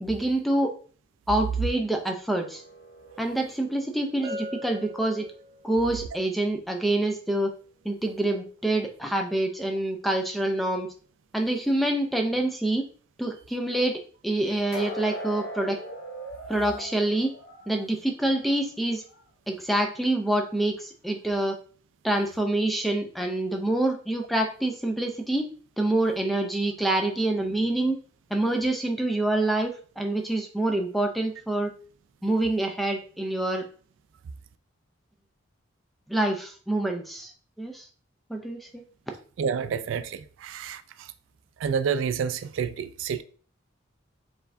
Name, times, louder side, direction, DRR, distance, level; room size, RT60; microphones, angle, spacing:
voice 1, 0.0-0.7 1.3-2.6 3.2-5.3 5.6-7.5 7.8-10.9 11.3-12.9 13.2-15.8 16.5-17.3 17.7-19.0 19.5-21.6 22.0-25.4 25.8-28.0 28.3-31.7 32.2-33.6 36.1-37.3 37.6-37.9 38.3-38.8, right 1 dB, ahead, 0.4 m, -26 dB
sound 1, 2.3-5.4 14.7-18.6 19.0-19.2 19.8-19.9, equal, 75° left, 1.4 m, -41 dB
Bell, 4.2-5.9, left 1 dB, 25° right, 1.4 m, -39 dB
voice 2, 39.4-40.8 41.6-43.2, right 6 dB, 70° right, 0.3 m, -29 dB
4.6 x 3.3 x 2.6 m
head